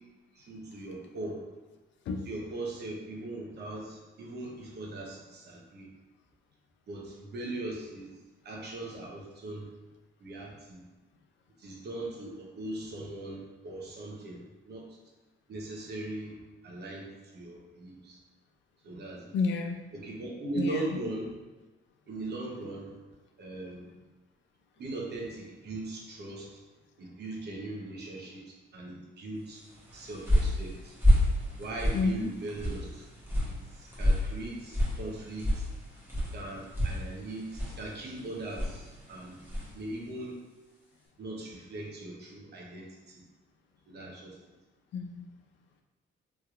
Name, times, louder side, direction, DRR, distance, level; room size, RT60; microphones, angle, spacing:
voice 1, 0.3-1.4 2.3-5.9 6.9-8.1 8.4-9.7 10.2-10.8 11.6-14.9 15.5-16.4 16.6-18.2 18.8-19.3 19.9-21.3 22.1-23.0 23.4-23.9 24.8-26.6 27.0-29.6 29.9-30.9 31.6-33.0 33.4-35.7 36.3-39.4 39.7-40.4 41.2-43.2 43.9-44.4, right 2 dB, 55° right, -2 dB, 0.9 m, -39 dB
voice 2, 19.3-19.8 20.6-21.0 31.9-32.3 44.9-45.2, left 4 dB, 70° left, 3 dB, 0.5 m, -30 dB
sound 1, 29.7-39.8, equal, 10° right, 1.2 m, -30 dB
3.2 x 2.9 x 2.4 m, 1.2 s
cardioid pair, 90°, 20 cm